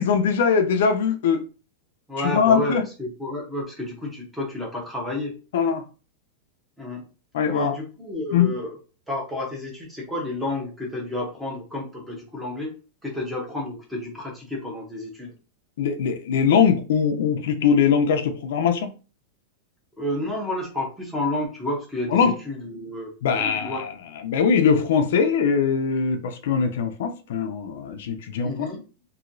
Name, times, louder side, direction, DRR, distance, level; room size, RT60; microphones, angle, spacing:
voice 1, 0.0-1.4 2.2-2.8 5.5-5.8 7.3-7.8 8.3-8.5 15.8-18.9 22.1-22.3 23.2-23.9 24.2-28.5, left 6 dB, 65° left, 0.5 m, -21 dB
voice 2, 2.1-5.3 6.8-7.1 7.5-8.8 9.1-12.7 13.0-15.3 20.0-23.8 28.4-28.8, left 1 dB, 5° right, 0.8 m, -30 dB
3.0 x 2.7 x 2.6 m
supercardioid pair, 175°, 0 cm